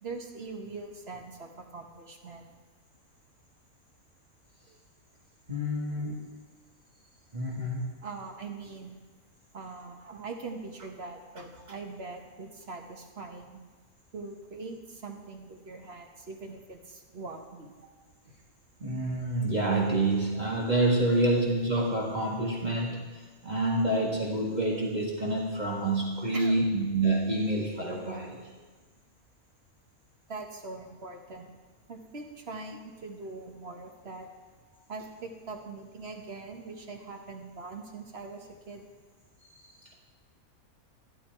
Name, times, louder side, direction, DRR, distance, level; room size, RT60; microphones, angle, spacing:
voice 1, 0.0-2.5 8.0-8.9 9.5-13.6 14.1-17.7 18.3-18.4 26.3-26.6 30.3-31.5 31.9-34.3 34.9-38.8, right 3 dB, 50° right, 3 dB, 1.5 m, -42 dB
voice 2, 5.5-6.3 7.3-7.9 18.8-28.4 39.6-39.9, right 2 dB, 30° right, -3 dB, 1.8 m, -28 dB
12.5 x 12.0 x 4.6 m, 1.3 s
omnidirectional pair, 1.5 m